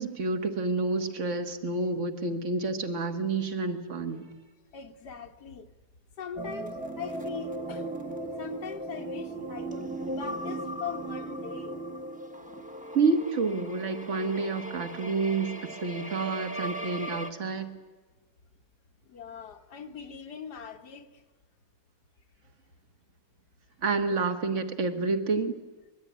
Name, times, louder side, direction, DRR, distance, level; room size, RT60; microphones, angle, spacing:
voice 1, 0.0-4.3 12.9-17.7 23.8-25.5, right 4 dB, 50° right, 8 dB, 1.9 m, -29 dB
voice 2, 4.7-5.7 6.2-8.0 8.2-11.8 19.0-21.2, left 7 dB, 85° left, 5 dB, 2.0 m, -41 dB
sound 1, 6.4-17.3, right 1 dB, 5° right, 1.1 m, -37 dB
24.0 x 21.5 x 9.4 m, 1.3 s
omnidirectional pair, 1.7 m